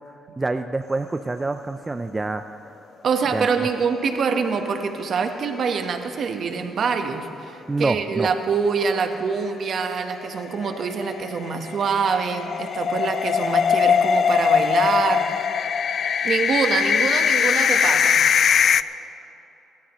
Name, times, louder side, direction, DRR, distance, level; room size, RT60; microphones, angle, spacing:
voice 1, 0.4-2.4 3.3-3.7 7.7-8.3, right 2 dB, 20° right, 8 dB, 0.4 m, -26 dB
voice 2, 3.0-15.5 16.2-18.2, right 5 dB, 60° right, 5 dB, 1.2 m, -25 dB
sound 1, 3.9-4.8 5.1-5.2 5.5-5.6 9.8-18.8, left 7 dB, 55° left, 0.3 m, -21 dB
23.5 x 13.0 x 3.1 m, 2.9 s
cardioid pair, 90°, 0 cm